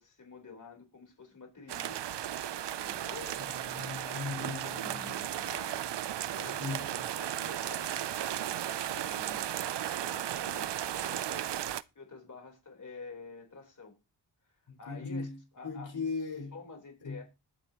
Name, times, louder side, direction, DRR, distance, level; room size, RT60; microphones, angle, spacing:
voice 1, 0.0-2.2 2.7-3.4 4.0-6.0 6.2-6.9 7.2-9.5 10.0-11.5 12.0-14.0 14.4-14.5 14.8-15.3 15.5-15.9 16.5-17.2, left 4 dB, 45° left, 3.9 m, -49 dB
sound 1, 1.7-11.8, right 11 dB, 70° right, 0.6 m, -35 dB
voice 2, 3.5-5.0 6.6-7.0 14.7-15.4 15.6-16.6 17.0-17.2, left 4 dB, 85° left, 5.4 m, -38 dB
21.0 x 7.8 x 3.0 m
wide cardioid pair, 135°, 43 cm